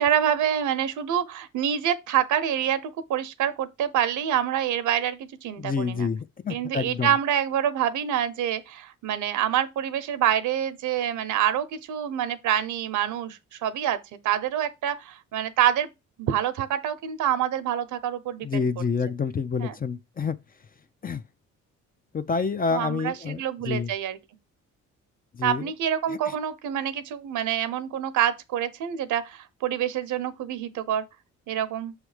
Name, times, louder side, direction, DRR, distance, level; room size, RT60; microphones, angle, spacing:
voice 1, 0.0-6.1 6.5-14.0 14.2-15.9 16.2-18.5 19.6-19.8 22.7-24.2 25.4-31.0 31.5-31.9, right 10 dB, 80° right, 0.9 m, -26 dB
voice 2, 5.6-7.1 18.4-20.4 21.0-21.2 22.1-23.9 25.3-25.7 26.1-26.2, left 5 dB, 30° left, 0.5 m, -28 dB
6.3 x 3.2 x 4.9 m
cardioid pair, 90°, 30 cm